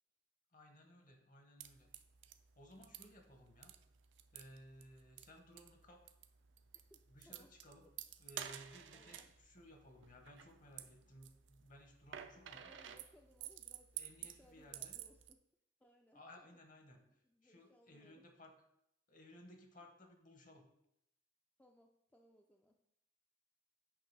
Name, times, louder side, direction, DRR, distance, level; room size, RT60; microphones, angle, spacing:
voice 1, 0.5-1.9 2.6-3.7 4.3-6.1 7.1-7.9 8.2-12.7 14.0-15.0 16.1-18.5 19.1-20.6, equal, 45° left, 4 dB, 1.1 m, -60 dB
sound 1, 1.6-15.3, right 10 dB, 70° right, 0.5 m, -52 dB
voice 2, 6.7-7.5 8.9-9.3 12.2-15.4 15.8-16.6 17.2-18.2 21.6-22.8, left 1 dB, 5° left, 2 dB, 0.4 m, -67 dB
8.5 x 3.0 x 6.0 m, 0.79 s
head